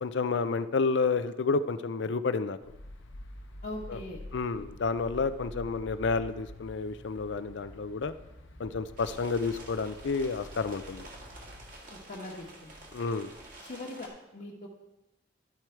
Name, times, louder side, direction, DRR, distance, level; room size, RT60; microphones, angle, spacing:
voice 1, 0.0-2.6 3.9-4.0 4.3-8.1 8.6-11.1 12.9-13.3, left 4 dB, 70° left, 12 dB, 0.5 m, -30 dB
sound 1, 2.6-11.7, left 1 dB, 90° left, 0.9 m, -47 dB
voice 2, 3.6-4.2 11.9-12.7 13.6-14.7, left 2 dB, 55° left, -5 dB, 1.2 m, -41 dB
sound 2, 9.0-14.1, right 1 dB, 45° right, 1.8 m, -48 dB
12.0 x 4.7 x 4.5 m, 0.95 s
head